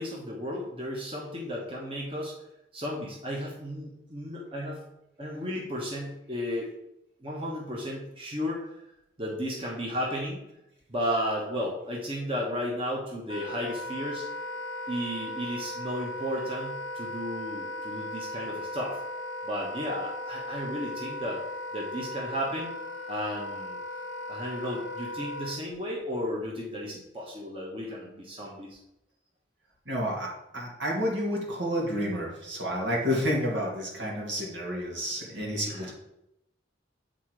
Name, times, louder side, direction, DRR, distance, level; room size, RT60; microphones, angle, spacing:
voice 1, 0.0-2.3 2.7-4.8 5.2-6.7 7.2-8.7 9.2-10.4 10.9-14.3 14.9-19.0 19.4-21.4 21.7-22.8 23.1-23.8 24.3-28.8 35.7-35.9, equal, 30° right, -2 dB, 1.1 m, -34 dB
Wind instrument woodwind instrument, 13.3-25.6, left 1 dB, 75° left, 0.7 m, -37 dB
voice 2, 29.9-35.9, equal, 80° right, -2 dB, 2.4 m, -30 dB
8.2 x 3.8 x 4.7 m, 0.85 s
head